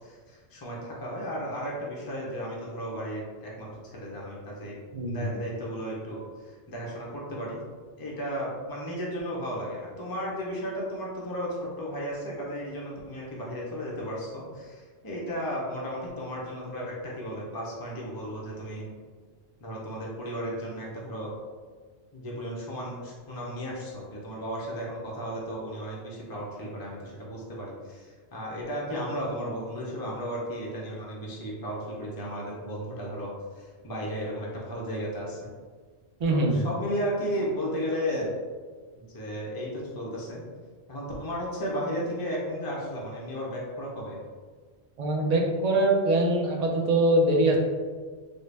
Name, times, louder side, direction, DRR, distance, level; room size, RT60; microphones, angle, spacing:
voice 1, 0.0-4.8 5.1-7.6 8.0-18.9 19.6-21.3 22.1-35.5 36.3-38.3 38.9-40.4 40.9-44.2, equal, 25° left, -4 dB, 0.6 m, -34 dB
voice 2, 4.9-5.3 36.2-36.7 45.0-47.6, right 1 dB, 50° right, 0 dB, 0.5 m, -23 dB
3.8 x 2.1 x 3.3 m, 1.5 s
omnidirectional pair, 1.2 m